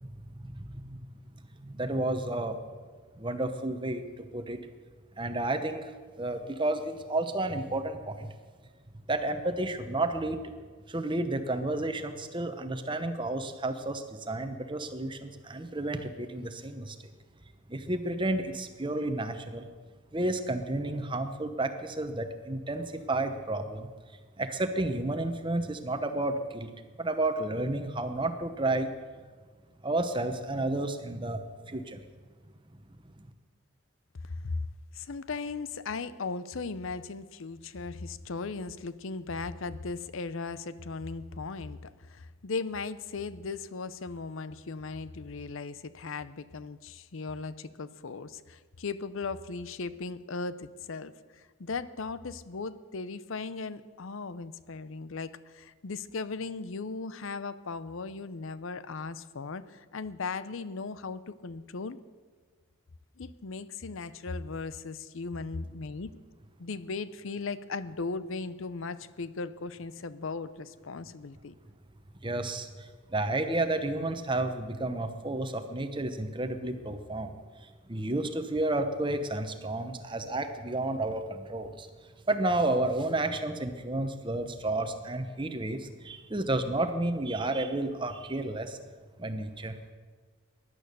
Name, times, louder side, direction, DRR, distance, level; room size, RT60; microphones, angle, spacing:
voice 1, 0.4-1.0 1.6-2.6 3.2-4.6 5.2-5.9 6.2-8.3 9.1-10.5 10.9-17.0 17.7-19.7 20.1-23.9 24.4-26.7 27.0-28.9 29.8-32.0 72.2-81.9 82.3-88.8 89.2-89.9, right 2 dB, 20° right, 8 dB, 0.9 m, -31 dB
voice 2, 34.2-34.7 34.9-62.0 63.2-66.1 66.6-71.5, left 4 dB, 65° left, 15 dB, 0.6 m, -37 dB
16.5 x 11.0 x 6.7 m, 1.5 s
head